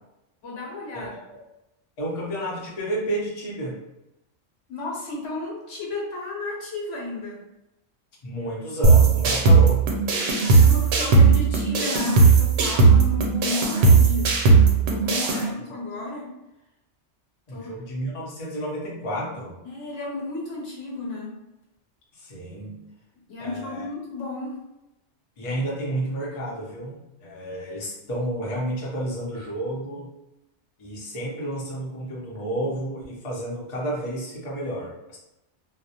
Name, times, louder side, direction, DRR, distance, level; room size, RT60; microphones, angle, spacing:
voice 1, 0.4-1.1 4.7-7.4 10.3-14.4 14.8-16.3 17.5-17.7 19.6-21.4 23.3-24.6, left 3 dB, 75° left, -4 dB, 1.1 m, -33 dB
voice 2, 0.9-1.4 2.0-3.8 8.2-9.9 15.3-15.5 17.5-19.6 22.1-22.8 23.4-23.9 25.4-30.1 30.8-35.2, right 1 dB, 35° left, -6 dB, 0.6 m, -31 dB
sound 1, 8.8-15.4, right 4 dB, 80° right, 0.9 m, -17 dB
2.3 x 2.0 x 2.7 m, 0.93 s
omnidirectional pair, 1.2 m